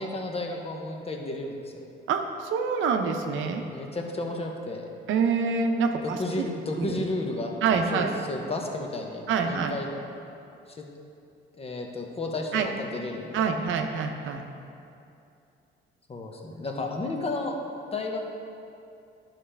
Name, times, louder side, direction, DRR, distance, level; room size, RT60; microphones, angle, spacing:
voice 1, 0.0-1.7 3.7-4.9 6.2-7.5 7.9-9.9 10.7-10.8 11.6-13.5 16.1-17.6 17.9-18.3, left 2 dB, 30° left, 1 dB, 1.0 m, -32 dB
voice 2, 2.1-3.6 5.1-6.4 6.8-7.0 7.6-8.1 9.3-9.8 12.5-12.7 13.3-14.4, right 5 dB, 80° right, 4 dB, 0.7 m, -26 dB
10.5 x 5.8 x 3.4 m, 2.6 s
cardioid pair, 90°, 20 cm